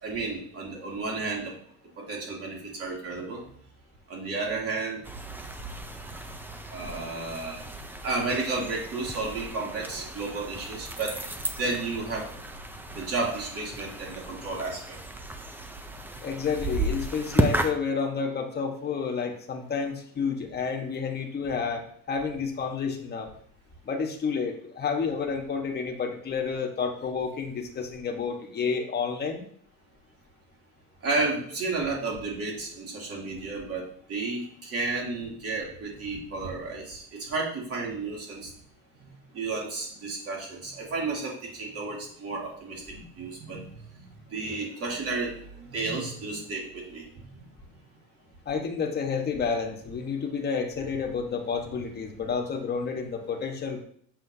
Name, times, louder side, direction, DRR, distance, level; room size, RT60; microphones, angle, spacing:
voice 1, 0.0-1.5 2.0-3.4 4.1-5.0 6.7-7.6 8.0-11.2 11.6-12.3 12.9-15.0 31.0-38.5 39.3-47.3, right 3 dB, 45° right, -3 dB, 2.8 m, -32 dB
sound 1, 5.0-17.7, right 2 dB, 5° right, 0.5 m, -34 dB
voice 2, 16.2-23.3 23.8-29.4 48.5-53.8, left 5 dB, 30° left, 2 dB, 1.3 m, -30 dB
7.7 x 6.8 x 2.7 m, 0.62 s
cardioid pair, 135°, 34 cm